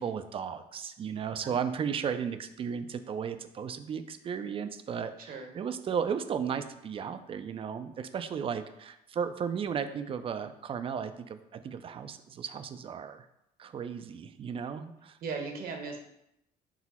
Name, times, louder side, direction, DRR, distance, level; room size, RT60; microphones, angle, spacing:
voice 1, 0.0-13.3 13.6-15.2, right 7 dB, 35° right, 10 dB, 0.4 m, -35 dB
voice 2, 15.2-16.0, right 4 dB, 60° right, 3 dB, 1.0 m, -37 dB
6.0 x 2.0 x 4.1 m, 0.81 s
cardioid pair, 110°, 17 cm